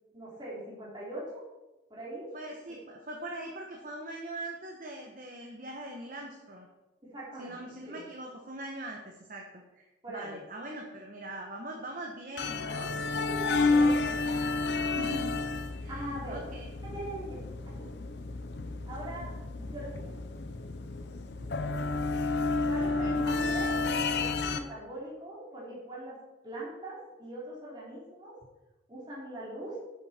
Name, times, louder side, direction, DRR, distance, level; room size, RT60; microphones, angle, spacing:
voice 1, 0.1-1.2 1.9-2.3 7.0-8.0 10.0-10.4 13.1-13.9 15.9-16.5 16.8-17.4 17.8-17.9 18.8-20.1 22.6-26.1 26.4-28.4 28.9-29.7, right 1 dB, 25° right, -6 dB, 3.5 m, -41 dB
voice 2, 2.3-6.7 7.4-9.4 9.7-12.9 13.4-14.6 14.9-15.4 15.8-16.7 22.9-23.1, right 1 dB, 50° right, 1 dB, 1.2 m, -42 dB
sound 1, 12.4-24.6, left 3 dB, 65° left, 0.7 m, -31 dB
10.5 x 7.7 x 4.4 m, 1.1 s
head